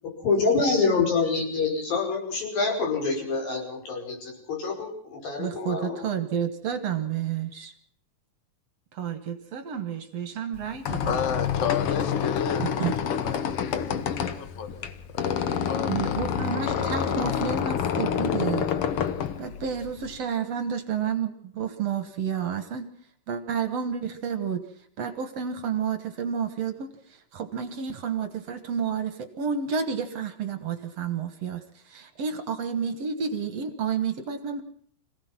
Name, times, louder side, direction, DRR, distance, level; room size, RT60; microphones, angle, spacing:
voice 1, 0.2-6.1, left 4 dB, 90° left, 1 dB, 7.0 m, -26 dB
voice 2, 5.4-7.7 8.9-11.2 12.6-12.9 15.9-18.7 19.4-22.9 23.3-24.6 25.0-34.6, right 7 dB, 60° right, 9 dB, 2.0 m, -30 dB
Squeak, 10.5-20.2, left 8 dB, 60° left, 1.5 m, -28 dB
voice 3, 11.0-16.2, left 7 dB, 40° left, 9 dB, 1.1 m, -33 dB
26.0 x 17.0 x 5.9 m, 0.63 s
omnidirectional pair, 4.0 m